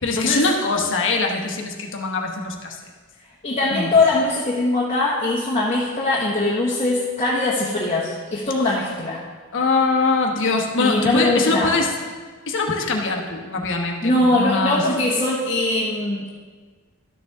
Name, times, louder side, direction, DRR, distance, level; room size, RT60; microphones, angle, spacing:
voice 1, 0.0-2.8 3.7-3.9 9.5-11.9 12.5-14.8, left 3 dB, 60° left, 2 dB, 1.2 m, -22 dB
voice 2, 3.4-9.2 10.8-11.8 14.0-16.3, left 2 dB, 30° left, -6 dB, 1.2 m, -21 dB
12.0 x 6.9 x 3.6 m, 1.4 s
head